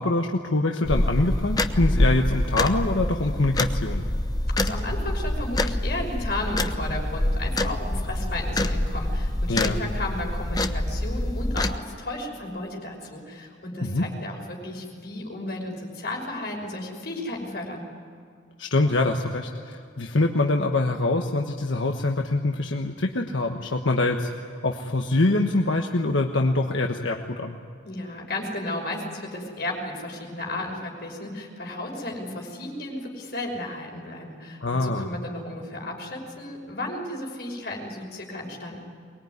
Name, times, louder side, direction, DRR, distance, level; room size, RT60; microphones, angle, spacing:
voice 1, 0.0-4.0 9.5-9.8 13.8-14.1 18.6-24.3 24.6-27.6 34.6-35.1, left 2 dB, 85° left, 2 dB, 1.3 m, -24 dB
sound 1, 0.8-11.8, left 1 dB, 20° left, 0.8 m, -26 dB
voice 2, 4.6-17.8 27.8-38.8, left 1 dB, 55° left, 0 dB, 5.9 m, -34 dB
23.5 x 21.0 x 9.7 m, 2.3 s
head